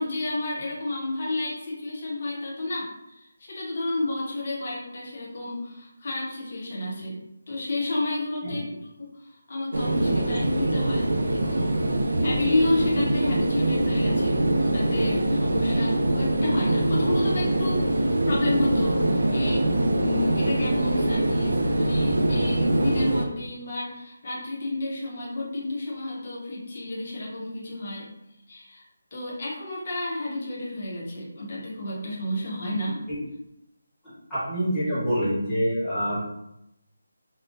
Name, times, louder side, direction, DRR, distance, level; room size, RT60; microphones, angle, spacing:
voice 1, 0.0-7.2 7.5-11.8 12.2-19.7 20.0-28.1 28.5-28.8 29.1-33.0, left 2 dB, 30° left, -4 dB, 0.7 m, -31 dB
sound 1, 9.7-23.3, right 1 dB, 75° right, 0.4 m, -23 dB
voice 2, 34.3-36.2, equal, 5° left, -15 dB, 0.9 m, -26 dB
3.6 x 2.1 x 2.4 m, 0.84 s
figure-of-eight pair, 180°, 0 cm